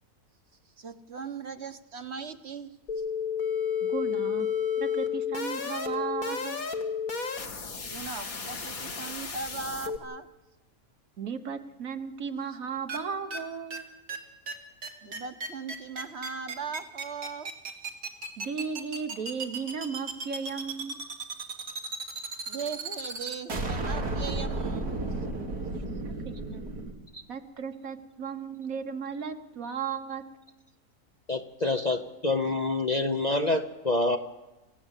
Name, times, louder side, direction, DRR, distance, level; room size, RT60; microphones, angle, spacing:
voice 1, 0.8-3.0 7.9-10.3 15.0-17.5 22.5-24.9 25.7-25.8, right 5 dB, 45° right, 9 dB, 1.4 m, -39 dB
sound 1, 2.9-10.0, left 7 dB, 65° left, 2.2 m, -31 dB
voice 2, 3.9-4.5 4.8-6.6 11.2-13.9 18.4-21.0 25.7-26.6 27.3-30.2, right 6 dB, 65° right, 8 dB, 1.6 m, -35 dB
Countdown-Boom, 12.9-13.0 13.3-13.4 13.7-13.8 14.1-14.2 14.5-14.6 14.8-26.9, right 2 dB, 90° right, 2.9 m, -33 dB
voice 3, 31.3-34.2, left 2 dB, 35° left, 6 dB, 0.9 m, -27 dB
28.0 x 15.5 x 8.2 m, 1.0 s
omnidirectional pair, 1.6 m